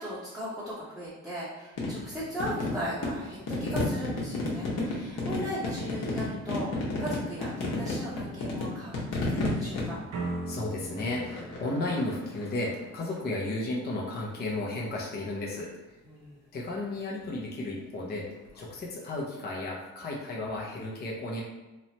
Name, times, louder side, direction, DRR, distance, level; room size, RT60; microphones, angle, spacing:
voice 1, 0.0-10.0 16.0-16.4, equal, ahead, -10 dB, 0.8 m, -37 dB
sound 1, 1.8-13.2 14.9-15.3 18.5-18.6, left 2 dB, 60° left, 1.0 m, -33 dB
sound 2, 10.1-13.0, right 2 dB, 60° right, 0.6 m, -38 dB
voice 2, 10.5-16.0 16.5-21.4, left 2 dB, 35° left, -3 dB, 0.6 m, -34 dB
3.1 x 2.0 x 2.8 m, 1.1 s
cardioid pair, 90°, 30 cm